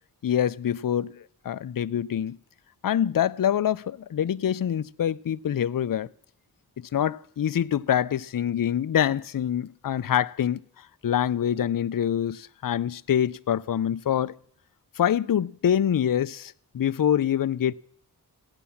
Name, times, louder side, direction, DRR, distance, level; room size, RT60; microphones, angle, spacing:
voice 1, 0.2-2.4 2.8-6.1 6.9-10.6 11.0-14.4 15.0-17.7, left 9 dB, 60° left, 0.5 m, -25 dB
15.5 x 9.9 x 7.1 m
wide cardioid pair, 40°, 39 cm